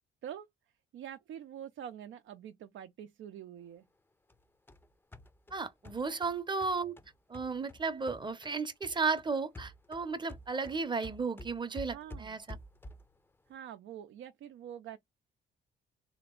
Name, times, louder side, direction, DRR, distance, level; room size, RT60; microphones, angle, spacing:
voice 1, 0.9-3.8 6.0-6.2 11.9-12.4 13.5-15.0, right 10 dB, 75° right, 0.6 m, -46 dB
sound 1, 4.3-8.6 8.8-13.2, left 1 dB, 10° left, 0.5 m, -50 dB
voice 2, 5.5-7.0 7.3-12.4, right 4 dB, 25° right, 0.7 m, -34 dB
3.4 x 2.9 x 3.7 m
cardioid pair, 90°, 20 cm